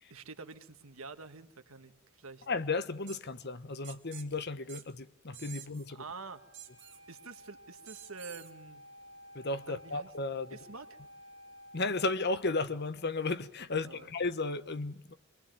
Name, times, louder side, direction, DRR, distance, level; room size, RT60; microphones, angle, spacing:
voice 1, 0.1-2.5 5.9-6.4 7.1-8.8 9.7-10.1 10.5-10.9 13.8-14.1, right 4 dB, 80° right, 1.8 m, -47 dB
voice 2, 2.5-6.0 9.3-10.6 11.7-15.1, left 3 dB, 55° left, 1.2 m, -34 dB
sound 1, 3.1-3.2 3.8-4.3 4.7-4.8 5.3-5.9 6.5-7.0 7.9-8.5, right 12 dB, 60° right, 2.4 m, -49 dB
Wind instrument woodwind instrument, 6.2-12.2, equal, 85° left, 7.1 m, -54 dB
26.0 x 21.0 x 9.2 m
head